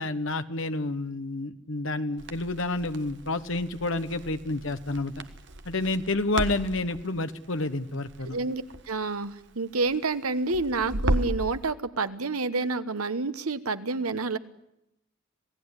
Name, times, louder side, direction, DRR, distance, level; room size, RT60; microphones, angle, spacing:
voice 1, 0.0-5.2 5.6-8.4, left 2 dB, 65° left, 10 dB, 1.3 m, -29 dB
Crackle, 2.2-11.5, right 1 dB, 55° right, 1.5 m, -35 dB
voice 2, 8.2-14.4, right 3 dB, 90° right, 12 dB, 1.3 m, -29 dB
27.5 x 17.5 x 9.9 m, 0.83 s
head